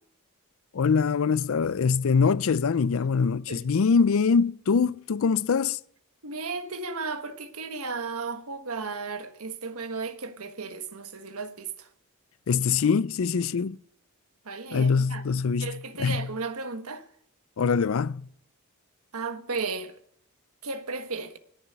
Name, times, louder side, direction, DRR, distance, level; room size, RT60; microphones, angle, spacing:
voice 1, 0.7-5.8 12.5-13.8 14.7-16.3 17.6-18.3, left 5 dB, 65° left, 0.4 m, -24 dB
voice 2, 6.2-11.9 14.4-15.2 15.6-17.0 19.1-20.0 20.6-21.4, right 4 dB, 80° right, 1.4 m, -34 dB
20.0 x 7.1 x 5.7 m
head